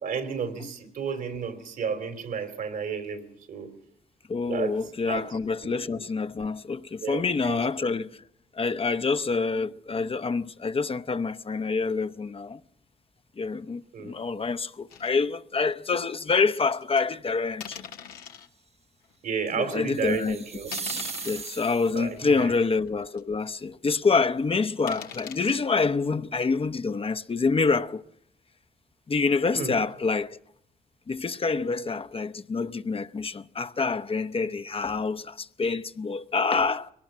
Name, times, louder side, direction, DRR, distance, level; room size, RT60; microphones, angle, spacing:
voice 1, 0.0-3.7 4.5-4.8 5.0-5.3 5.6-6.0 7.0-7.6 13.9-14.2 19.2-20.7 21.9-22.5 29.5-29.7, right 6 dB, 75° right, 3.1 m, -32 dB
voice 2, 4.3-8.2 8.5-12.6 13.4-17.8 19.6-20.4 21.2-28.0 29.1-30.4 31.1-36.9, left 4 dB, 40° left, 0.8 m, -27 dB
sound 1, 14.9-15.1 15.7-15.8 16.7-17.0 17.6-18.5 19.1-19.2 19.7-19.9 20.7-21.6 22.3-22.4 22.9-23.0 23.2-23.3 24.9-25.6, left 8 dB, 90° left, 1.3 m, -41 dB
sound 2, 19.9-22.1, right 5 dB, 45° right, 1.1 m, -37 dB
22.5 x 18.5 x 7.5 m
supercardioid pair, 50°, 15 cm